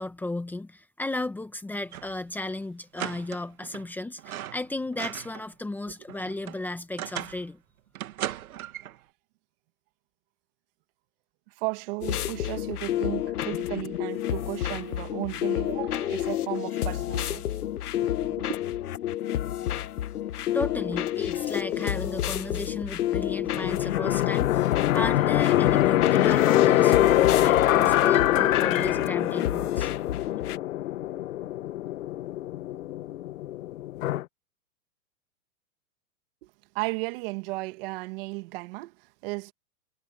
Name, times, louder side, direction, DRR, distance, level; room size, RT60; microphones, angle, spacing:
voice 1, 0.0-7.6 20.5-29.9, left 2 dB, 5° left, 1.3 m, -35 dB
sound 1, 1.8-2.2 2.5-2.6 3.0-3.9 4.2-5.5 5.8-7.5 8.0-9.0, right 12 dB, 70° right, 2.0 m, -37 dB
voice 2, 11.5-17.4 18.0-18.5 36.4-39.5, right 24 dB, 40° right, 2.0 m, -35 dB
sound 2, 12.0-30.6, left 12 dB, 80° left, 1.3 m, -30 dB
sound 3, 23.6-34.2, left 14 dB, 60° left, 1.4 m, -24 dB
hypercardioid pair, 155°, 44 cm